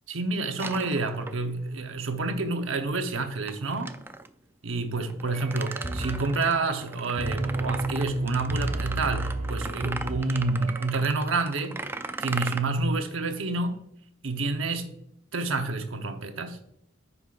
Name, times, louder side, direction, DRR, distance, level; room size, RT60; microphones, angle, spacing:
voice 1, 0.1-4.0 4.6-11.8 12.2-13.8 14.2-14.9 15.3-16.6, right 3 dB, 90° right, 0.9 m, -28 dB
sound 1, 0.6-1.7 3.5-4.3 5.1-12.6, right 3 dB, 10° right, 0.3 m, -38 dB
sound 2, 5.3-10.9, right 2 dB, 35° right, 0.7 m, -32 dB
14.0 x 5.5 x 2.5 m
head